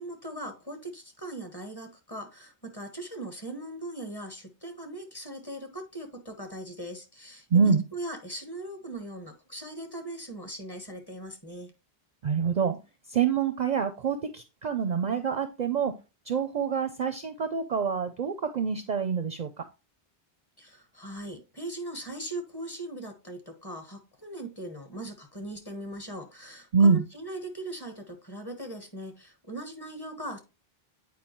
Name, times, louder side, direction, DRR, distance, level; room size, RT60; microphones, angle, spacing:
voice 1, 0.0-11.7 20.6-30.4, right 1 dB, 25° left, 6 dB, 1.1 m, -40 dB
voice 2, 7.5-7.8 12.2-12.8 13.1-16.0 16.3-19.5 26.7-27.0, right 6 dB, 55° right, 9 dB, 0.5 m, -26 dB
8.6 x 4.6 x 3.0 m, 0.28 s
omnidirectional pair, 1.1 m